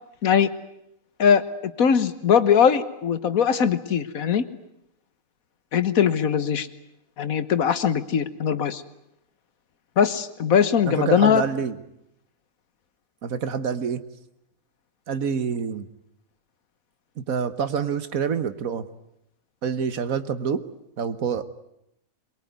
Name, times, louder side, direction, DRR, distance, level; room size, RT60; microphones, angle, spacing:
voice 1, 1.8-4.4 5.7-6.7 7.2-8.8 10.0-11.4, left 7 dB, 75° left, 13 dB, 1.6 m, -20 dB
voice 2, 10.9-11.8 13.2-14.0 15.1-15.8 17.2-18.9 19.6-20.6 21.0-21.4, right 6 dB, 75° right, 12 dB, 1.7 m, -27 dB
23.0 x 22.5 x 9.4 m, 0.80 s
omnidirectional pair, 1.5 m